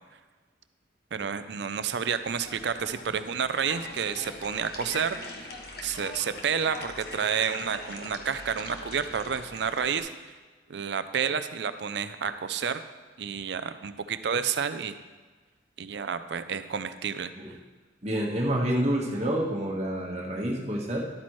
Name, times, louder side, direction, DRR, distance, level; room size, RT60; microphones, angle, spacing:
voice 1, 1.1-5.2 5.8-10.1 10.7-12.8 13.2-15.0 15.8-17.3, right 7 dB, 65° right, 11 dB, 0.5 m, -30 dB
sound 1, 2.1-10.0, left 2 dB, 55° left, 1.1 m, -42 dB
voice 2, 18.0-21.0, right 1 dB, 35° right, -2 dB, 1.4 m, -28 dB
12.0 x 8.5 x 3.1 m, 1.4 s
head